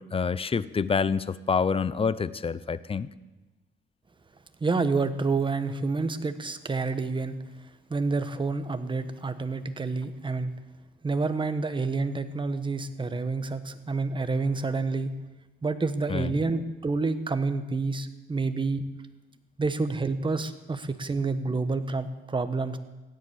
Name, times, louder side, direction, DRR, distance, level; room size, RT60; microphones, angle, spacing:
voice 1, 0.0-3.1 16.1-16.3, left 5 dB, 30° left, 17 dB, 0.7 m, -27 dB
voice 2, 4.6-7.4 7.9-10.5 11.0-15.1 15.6-18.9 19.6-22.8, right 3 dB, 25° right, 9 dB, 1.3 m, -28 dB
16.0 x 10.5 x 8.3 m, 1.2 s
cardioid pair, 90°, 20 cm